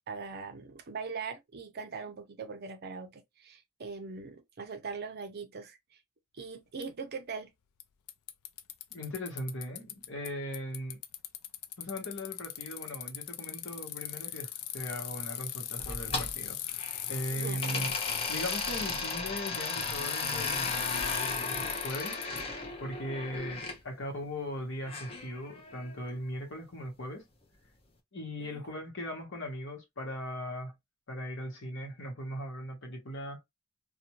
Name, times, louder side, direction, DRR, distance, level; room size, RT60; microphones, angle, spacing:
voice 1, 0.1-5.8 6.3-7.5 17.3-17.9 28.4-28.6, right 5 dB, 45° right, 0.5 m, -41 dB
Bicycle, 6.8-6.9 7.8-7.9 8.1-10.3 10.5-22.4, left 12 dB, 90° left, 0.4 m, -38 dB
voice 2, 8.9-11.0 11.8-17.9 18.3-22.2 22.8-27.2 28.1-30.7 31.1-33.4, equal, 55° left, 1.1 m, -39 dB
sound 1, 15.8-17.2 17.6-23.8 24.8-26.0, left 3 dB, 25° left, 0.6 m, -36 dB
2.5 x 2.1 x 2.9 m
head